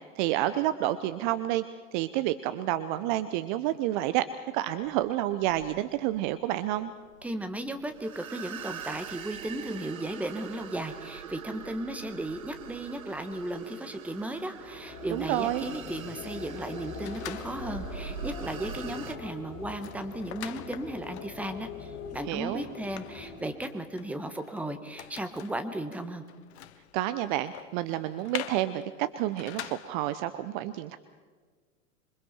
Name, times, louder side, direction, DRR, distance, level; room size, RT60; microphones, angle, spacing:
voice 1, 0.2-1.6 1.9-4.2 4.5-6.9 15.1-15.7 22.3-22.6 26.9-31.0, right 14 dB, 35° right, 12 dB, 0.8 m, -29 dB
sound 1, 4.7-19.2, right 8 dB, 70° right, 1.5 m, -43 dB
voice 2, 7.2-26.2, right 1 dB, 5° right, 8 dB, 1.5 m, -35 dB
sound 2, 14.5-23.8, left 5 dB, 35° left, 6.0 m, -43 dB
sound 3, 17.0-17.9 18.4-18.5 18.8-30.2, left 12 dB, 50° left, 1.2 m, -45 dB
26.5 x 24.0 x 4.5 m, 1.5 s
figure-of-eight pair, 105°, 42 cm